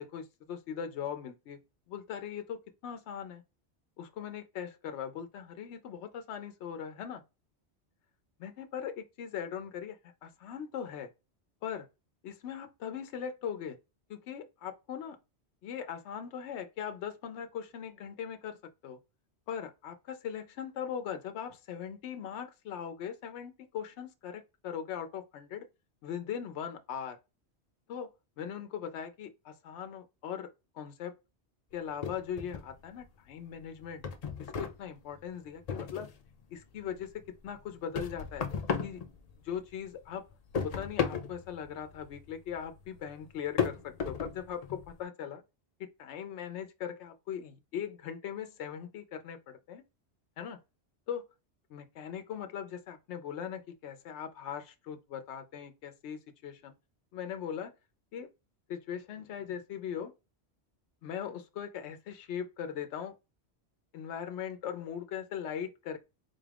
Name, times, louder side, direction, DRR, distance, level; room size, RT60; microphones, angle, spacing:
voice 1, 0.0-1.6 1.9-3.4 4.0-7.2 8.4-11.1 11.6-11.9 12.2-13.8 14.1-15.2 15.6-18.6 18.8-19.0 19.5-25.7 26.0-27.2 27.9-28.1 28.4-30.5 30.7-31.2 31.7-34.0 34.4-36.1 36.5-38.5 38.8-39.0 39.4-40.2 40.6-45.4 45.8-49.8 50.4-50.6 51.1-51.2 51.7-56.7 57.1-57.7 58.1-58.3 58.7-60.1 61.0-63.1 63.9-66.0, left 8 dB, 80° left, 0.9 m, -40 dB
sound 1, 32.0-33.1 33.4-36.3 36.7-39.7 40.0-45.0, left 6 dB, 50° left, 0.5 m, -36 dB
4.0 x 2.4 x 3.3 m
omnidirectional pair, 1.1 m